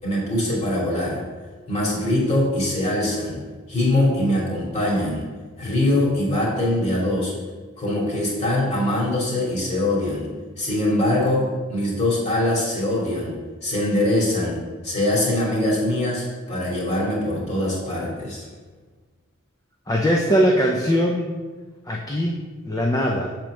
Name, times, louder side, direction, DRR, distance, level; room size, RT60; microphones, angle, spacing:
voice 1, 0.0-1.2 1.7-3.4 3.7-5.2 5.6-7.3 7.8-10.3 10.6-13.3 13.6-18.4, left 1 dB, 35° left, -5 dB, 2.4 m, -23 dB
voice 2, 19.9-21.3 21.9-22.4 22.7-23.3, equal, 15° left, 0 dB, 0.6 m, -20 dB
7.0 x 4.5 x 6.2 m, 1.4 s
head